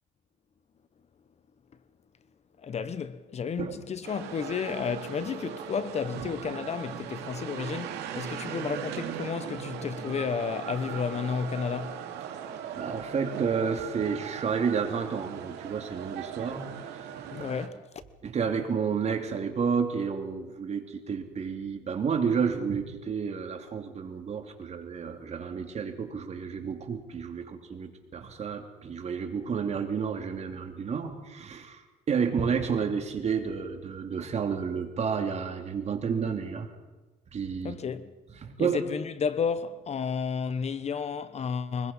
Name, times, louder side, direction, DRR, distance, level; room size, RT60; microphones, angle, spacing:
voice 1, 2.6-12.0 17.3-17.8 37.6-38.1 38.6-41.9, left 6 dB, 40° left, 1.0 m, -32 dB
sound 1, 4.0-17.7, right 9 dB, 80° right, 2.6 m, -39 dB
voice 2, 12.7-16.7 17.4-17.5 18.2-31.8 32.1-36.7 37.3-37.8 38.4-38.8, right 6 dB, 40° right, 2.9 m, -30 dB
24.0 x 21.0 x 5.5 m
cardioid pair, 110°, 17 cm